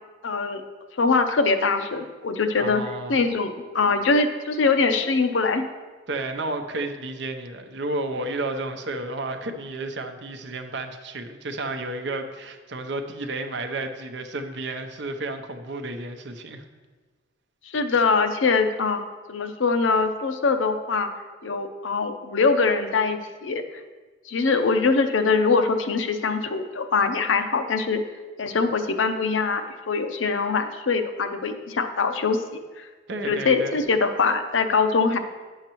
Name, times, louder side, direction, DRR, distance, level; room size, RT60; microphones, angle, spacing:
voice 1, 0.2-0.6 1.0-2.8 3.1-5.6 17.7-19.0 19.3-21.1 21.4-23.6 24.3-28.0 28.4-32.4 32.8-32.9 33.3-35.2, left 4 dB, 85° left, 7 dB, 0.6 m, -23 dB
voice 2, 2.6-3.2 6.1-16.6 33.1-33.8, right 2 dB, 65° right, 6 dB, 0.7 m, -32 dB
10.5 x 6.5 x 3.0 m, 1.3 s
head